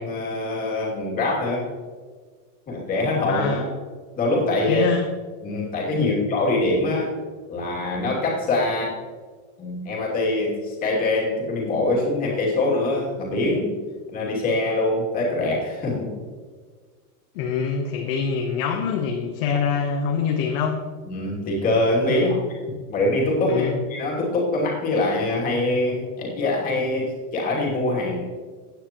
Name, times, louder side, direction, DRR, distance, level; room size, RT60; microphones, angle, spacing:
voice 1, 0.0-1.7 2.7-3.7 4.2-4.9 5.4-7.1 7.5-8.9 9.6-13.7 14.1-16.1 21.1-22.4 22.9-28.2, left 2 dB, 20° left, -3 dB, 2.6 m, -24 dB
voice 2, 3.3-3.7 4.7-5.1 6.0-6.2 17.3-20.8 22.1-22.4 23.4-23.8, left 6 dB, 35° left, 2 dB, 1.0 m, -25 dB
16.0 x 9.3 x 3.0 m, 1.5 s
supercardioid pair, 170°, 47 cm